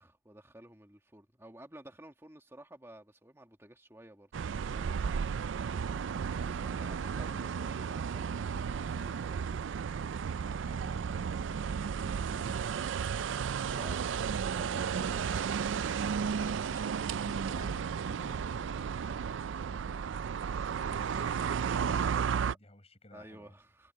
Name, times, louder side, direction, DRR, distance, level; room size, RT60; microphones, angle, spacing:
voice 1, 0.0-4.3 6.4-9.7 13.7-14.0 14.5-17.0 22.4-22.6 23.1-23.9, right 1 dB, 15° right, 1.8 m, -53 dB
sound 1, 4.3-22.5, right 6 dB, 75° right, 0.4 m, -33 dB
voice 2, 7.1-7.5 10.4-14.2 16.3-21.7 22.2-23.5, left 1 dB, 35° left, 5.3 m, -56 dB
head